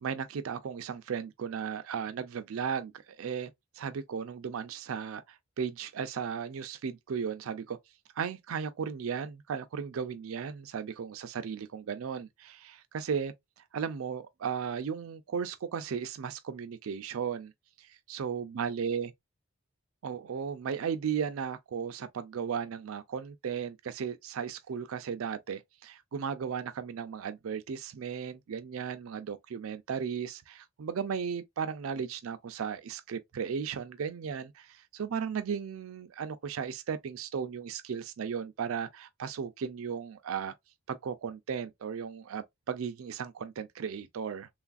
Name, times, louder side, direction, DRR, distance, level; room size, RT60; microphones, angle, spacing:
voice 1, 0.0-3.5 3.8-7.8 8.2-13.3 13.7-17.5 17.8-19.1 20.0-40.5 40.9-44.5, right 7 dB, 85° right, 0.4 m, -35 dB
3.1 x 2.4 x 2.3 m
head